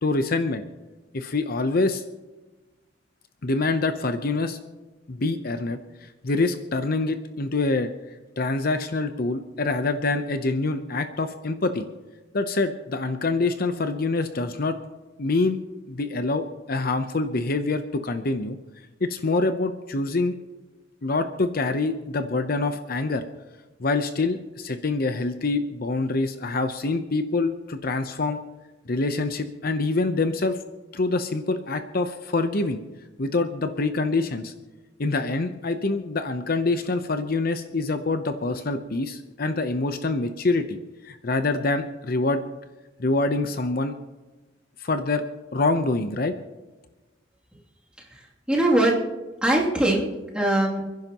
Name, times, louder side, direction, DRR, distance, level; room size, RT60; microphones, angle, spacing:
voice 1, 0.0-0.6 1.1-2.0 3.4-4.6 5.1-5.8 6.2-7.9 8.4-11.9 12.3-14.8 15.2-15.6 15.9-18.6 19.0-20.4 21.0-23.2 23.8-28.4 28.9-30.6 30.9-32.8 33.2-34.5 35.0-40.8 41.0-42.4 43.0-43.9 44.8-45.2 45.5-46.3, left 3 dB, 55° left, 8 dB, 0.8 m, -25 dB
voice 2, 48.1-49.0 49.4-50.1 50.3-50.8, right 1 dB, 5° right, -4 dB, 2.7 m, -21 dB
29.5 x 10.5 x 3.0 m, 1.2 s
head